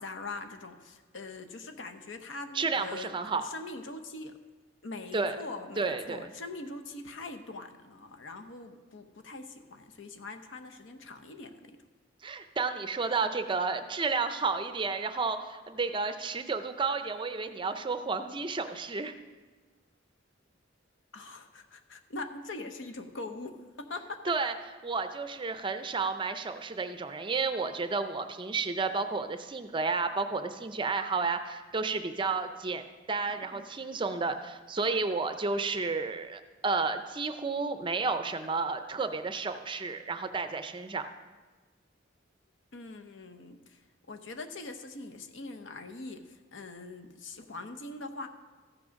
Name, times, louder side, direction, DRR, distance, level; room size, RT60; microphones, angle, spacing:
voice 1, 0.0-4.3 4.8-11.8 21.1-24.3 33.4-33.6 33.9-34.1 42.7-43.8 44.1-48.3, left 3 dB, 70° left, 6 dB, 0.8 m, -42 dB
voice 2, 2.5-3.4 5.1-5.4 5.8-6.3 12.2-19.1 24.3-24.5 24.8-32.8 33.1-41.1, right 4 dB, 25° right, 9 dB, 0.5 m, -31 dB
14.0 x 6.1 x 5.1 m, 1.3 s
head